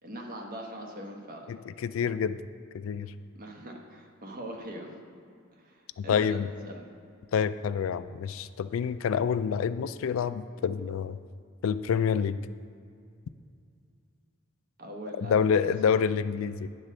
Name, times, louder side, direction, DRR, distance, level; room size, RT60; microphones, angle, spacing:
voice 1, 0.0-1.5 3.3-5.0 5.5-6.4 6.6-6.8 14.8-16.1, right 1 dB, 45° right, 1 dB, 1.1 m, -42 dB
voice 2, 1.5-2.4 2.7-3.1 6.0-6.5 7.3-11.2 11.6-12.4 15.2-16.7, left 7 dB, 75° left, 13 dB, 0.3 m, -27 dB
9.7 x 3.9 x 6.4 m, 2.3 s
head